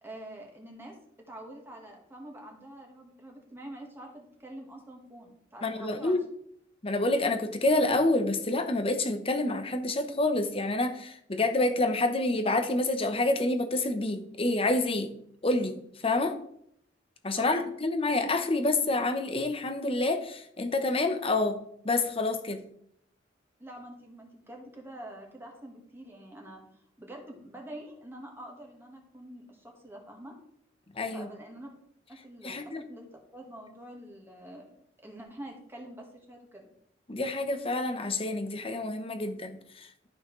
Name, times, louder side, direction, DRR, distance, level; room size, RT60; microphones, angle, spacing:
voice 1, 0.0-1.0 1.3-6.2 17.4-17.7 23.6-26.6 27.0-30.3 31.1-31.7 32.1-33.0 33.3-34.7 35.0-36.7, right 1 dB, 15° right, 0 dB, 1.6 m, -46 dB
voice 2, 5.6-6.2 6.8-15.1 15.4-16.4 17.2-21.6 21.8-22.6 30.9-31.3 32.4-32.8 37.1-40.1, left 2 dB, 30° left, 7 dB, 0.9 m, -28 dB
12.5 x 5.6 x 3.2 m, 0.69 s
head